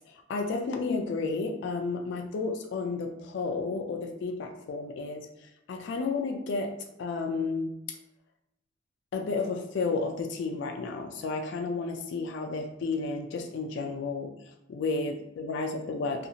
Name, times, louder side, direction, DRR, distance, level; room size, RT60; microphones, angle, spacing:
voice 1, 0.1-6.7 7.0-8.0 9.1-14.3 14.7-16.3, left 4 dB, 70° left, 3 dB, 0.3 m, -32 dB
2.6 x 2.4 x 2.7 m, 0.87 s
head